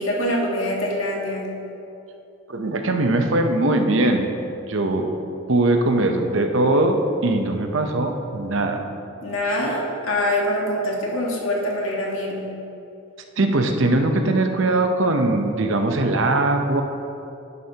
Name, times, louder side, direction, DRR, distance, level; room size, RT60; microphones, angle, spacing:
voice 1, 0.0-1.5 9.2-12.5, left 1 dB, 75° left, -2 dB, 1.6 m, -24 dB
voice 2, 2.5-4.2 4.7-5.1 5.5-8.9 13.4-16.8, right 2 dB, 65° right, 4 dB, 0.8 m, -20 dB
11.0 x 9.8 x 2.9 m, 2.7 s
head